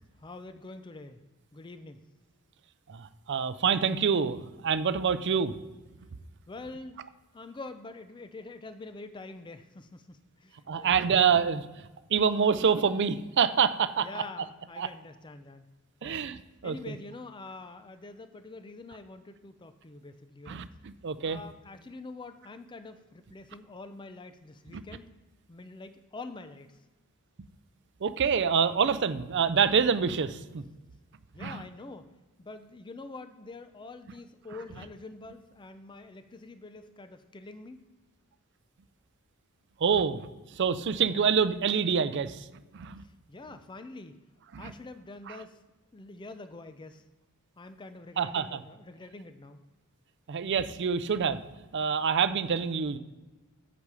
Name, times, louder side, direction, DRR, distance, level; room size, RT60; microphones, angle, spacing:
voice 1, 0.2-1.2 1.5-2.0 6.5-7.0 7.3-10.9 14.0-15.7 16.0-16.2 16.6-20.6 21.2-25.0 25.5-26.8 31.3-32.1 32.4-37.8 43.0-44.1 44.5-45.6 45.9-47.0 47.6-49.6, left 3 dB, 20° left, 9 dB, 0.4 m, -45 dB
voice 2, 2.9-5.6 10.7-11.6 12.1-14.2 14.8-14.9 16.0-16.9 20.5-21.4 24.7-24.8 28.0-30.6 31.4-31.6 39.8-40.3 40.5-42.5 42.7-43.0 44.5-44.7 45.3-45.4 48.2-48.6 50.3-51.4 51.7-53.0, right 6 dB, 50° right, 13 dB, 0.5 m, -26 dB
8.4 x 5.1 x 4.8 m, 1.2 s
head